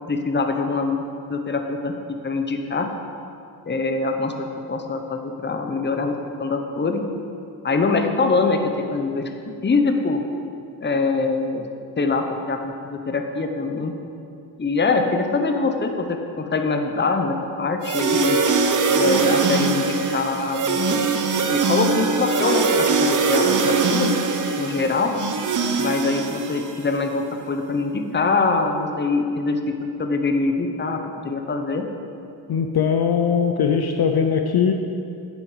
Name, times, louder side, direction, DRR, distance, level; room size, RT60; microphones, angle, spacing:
voice 1, 0.1-1.0 1.3-1.9 2.2-2.9 3.7-7.0 7.6-9.3 9.6-10.2 10.8-11.7 12.0-13.9 14.6-18.4 18.9-21.1 21.5-24.1 24.6-25.1 25.8-31.8, left 3 dB, 20° left, 4 dB, 0.8 m, -23 dB
sound 1, 17.8-27.0, right 4 dB, 40° right, 0.8 m, -22 dB
voice 2, 32.5-34.7, left 7 dB, 50° left, 5 dB, 0.7 m, -20 dB
9.6 x 8.1 x 5.0 m, 2.6 s
cardioid pair, 110°, 48 cm